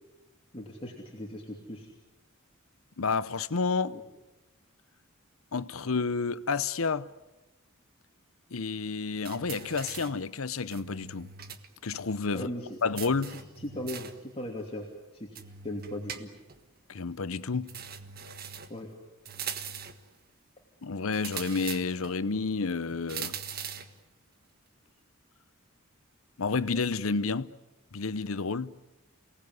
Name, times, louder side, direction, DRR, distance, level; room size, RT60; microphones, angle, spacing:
voice 1, 0.5-1.9 3.9-4.0 12.3-12.8 13.3-14.9 15.1-16.3 18.7-18.9, left 1 dB, 30° left, 2.9 m, -38 dB
voice 2, 3.0-4.0 5.5-7.1 8.5-11.3 11.8-12.5 12.8-13.4 16.9-17.7 20.8-23.4 26.4-27.5 27.9-28.7, left 4 dB, 80° left, 0.8 m, -30 dB
sound 1, 9.2-10.2 10.7-11.7 11.9-12.0 13.0-14.2 15.4-16.6 17.7-18.8 19.3-20.1 21.1-22.2 23.1-24.0, right 7 dB, 45° right, 1.5 m, -41 dB
28.5 x 18.5 x 9.6 m
head